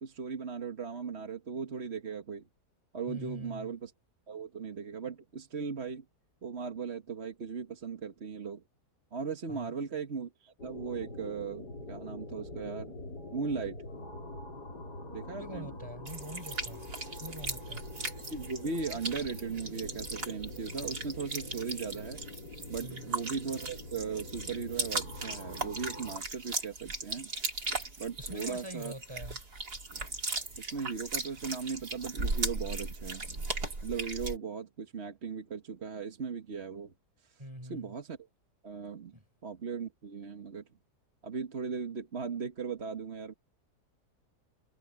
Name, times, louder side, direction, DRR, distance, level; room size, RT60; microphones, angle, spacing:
voice 1, 0.0-2.4 2.9-3.9 4.3-6.0 6.4-8.6 9.1-13.0 13.3-13.8 15.1-15.8 18.3-22.2 22.7-27.3 28.0-28.9 30.6-33.3 33.8-36.9 37.2-37.4 37.7-38.2 38.6-39.1 39.4-40.6 41.2-43.3, right 5 dB, 40° right, 1.7 m, -38 dB
voice 2, 3.1-3.7 9.5-9.8 15.4-16.9 17.2-17.8 22.8-23.1 28.2-29.4 37.4-37.9 39.1-39.3, equal, 15° right, 7.4 m, -44 dB
sound 1, 10.6-26.2, left 1 dB, 80° left, 4.9 m, -45 dB
sound 2, 16.1-34.4, right 3 dB, 70° right, 4.8 m, -38 dB
omnidirectional pair, 1.7 m